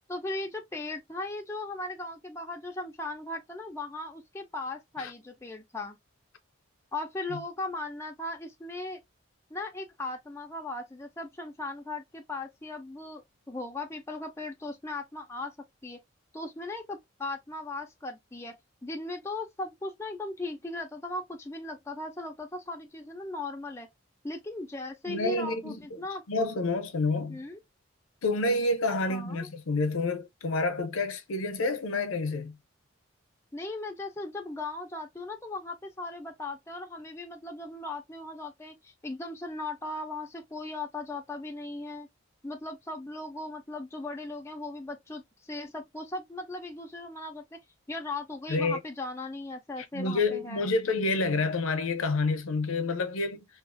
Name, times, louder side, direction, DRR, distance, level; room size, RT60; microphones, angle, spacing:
voice 1, 0.1-6.0 6.9-9.0 9.5-15.5 15.8-16.0 16.3-18.6 18.8-23.9 24.2-26.2 27.3-27.6 29.1-29.5 33.5-42.1 42.4-47.6 47.9-50.7, left 2 dB, 10° left, 0.4 m, -38 dB
voice 2, 25.0-26.0 26.3-27.4 28.2-32.6 48.5-48.8 49.9-53.5, left 3 dB, 75° left, 0.6 m, -28 dB
2.8 x 2.3 x 2.4 m
head